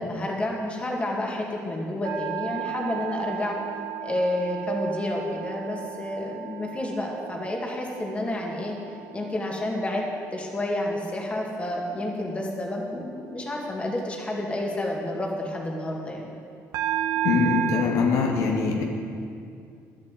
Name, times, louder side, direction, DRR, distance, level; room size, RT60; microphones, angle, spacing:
voice 1, 0.0-3.6 4.0-8.7 9.1-10.0 10.3-16.3, left 1 dB, 20° left, -1 dB, 2.1 m, -30 dB
sound 1, 2.0-10.3 10.8-11.1 16.7-17.8, right 11 dB, 85° right, 1.1 m, -34 dB
voice 2, 17.2-18.8, left 5 dB, 75° left, 0 dB, 1.8 m, -23 dB
11.5 x 7.6 x 9.1 m, 2.4 s
cardioid pair, 120°, 6 cm